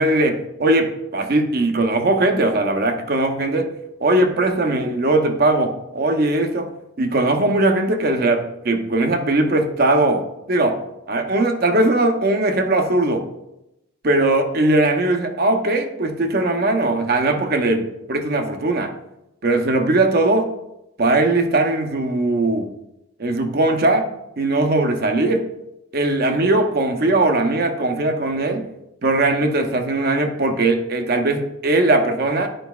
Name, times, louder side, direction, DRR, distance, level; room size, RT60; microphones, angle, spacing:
voice 1, 0.0-3.7 4.0-6.7 7.0-10.8 11.1-13.3 14.0-18.9 19.4-20.5 21.0-22.7 23.2-24.1 24.4-25.4 25.9-28.7 29.0-32.5, right 2 dB, 50° right, 6 dB, 0.7 m, -19 dB
10.0 x 5.0 x 2.3 m, 0.88 s
head